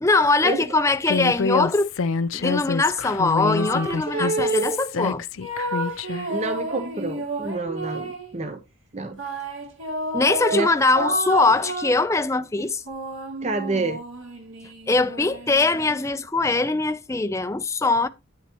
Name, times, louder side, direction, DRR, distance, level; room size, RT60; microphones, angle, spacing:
voice 1, 0.0-1.9 2.4-5.2 10.1-12.8 14.9-18.1, left 3 dB, 15° left, 0.5 m, -21 dB
Human voice, 1.1-6.3, left 4 dB, 75° left, 0.5 m, -27 dB
sound 1, 3.4-4.9 5.4-8.3 9.2-12.1 12.6-16.2, right 2 dB, 70° right, 2.8 m, -30 dB
voice 2, 6.3-8.6 8.9-9.3 10.5-10.7 13.4-14.0, right 2 dB, 30° right, 0.7 m, -28 dB
9.4 x 9.4 x 3.0 m
head